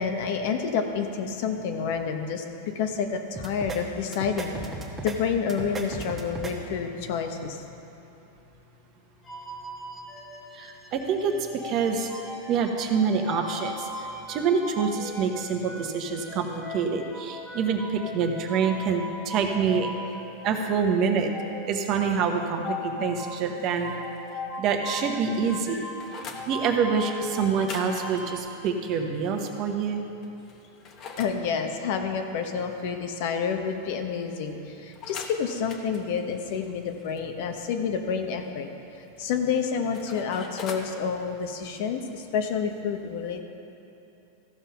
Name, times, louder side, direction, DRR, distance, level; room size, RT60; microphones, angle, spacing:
voice 1, 0.0-2.4 2.7-4.5 5.0-7.6 31.2-38.7 39.2-43.4, left 6 dB, 60° left, 5 dB, 1.0 m, -29 dB
sound 1, 3.4-3.8 4.1-5.2 5.5-6.5, right 3 dB, 15° right, 1.3 m, -35 dB
sound 2, 9.2-28.4, left 1 dB, 15° left, 1.1 m, -39 dB
voice 2, 10.5-12.1 12.5-19.9 20.4-21.3 21.7-23.9 24.6-25.9 26.5-30.0, right 6 dB, 40° right, 3 dB, 1.1 m, -26 dB
sound 3, 23.5-24.4 24.7-24.8 25.1-26.5 27.5-29.7 30.2-31.4 34.9-37.2 39.2-40.9, left 4 dB, 35° left, 1.0 m, -44 dB
14.5 x 5.6 x 5.7 m, 3.0 s
supercardioid pair, 135°, 0 cm